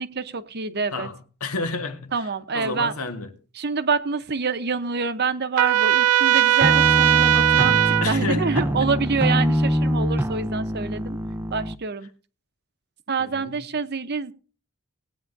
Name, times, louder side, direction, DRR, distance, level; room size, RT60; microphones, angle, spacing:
voice 1, 0.0-1.1 2.1-2.9 3.6-11.2 11.5-12.1 13.1-14.3, right 4 dB, 45° right, 0.9 m, -26 dB
voice 2, 0.9-3.4 8.0-8.9 13.2-13.7, left 3 dB, 80° left, 1.7 m, -31 dB
Trumpet, 5.6-8.1, right 11 dB, 85° right, 0.4 m, -18 dB
sound 1, 6.6-11.8, equal, 10° right, 0.5 m, -24 dB
18.5 x 9.4 x 2.6 m
head